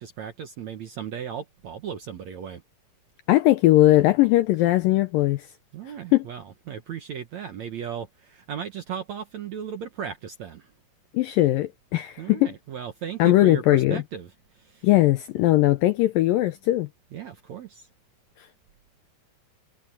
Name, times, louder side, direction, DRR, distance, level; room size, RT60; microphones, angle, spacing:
voice 1, 0.0-2.6 5.7-10.7 12.2-14.3 14.7-14.8 17.1-17.9, right 8 dB, 65° right, 1.8 m, -36 dB
voice 2, 3.3-5.5 6.1-6.3 11.1-12.5 13.2-14.0 14.8-16.9 18.4-18.5, left 16 dB, 85° left, 2.0 m, -19 dB
omnidirectional pair, 4.7 m